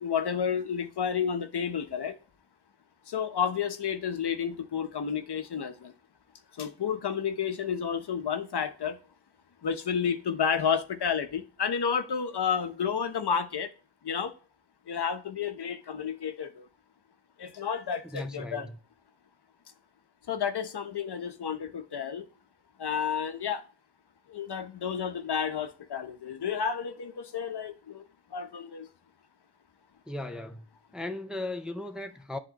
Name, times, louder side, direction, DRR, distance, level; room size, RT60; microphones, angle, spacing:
voice 1, 0.0-2.1 3.1-5.9 6.6-9.0 9.6-13.7 14.0-14.3 14.9-16.7 17.4-18.7 20.3-22.2 22.8-23.6 24.3-28.0 28.3-28.9, left 7 dB, 65° left, 0.9 m, -31 dB
voice 2, 18.0-18.8 30.1-30.6 30.9-32.4, left 2 dB, ahead, 0.5 m, -37 dB
10.5 x 3.8 x 2.9 m
wide cardioid pair, 100°, 43 cm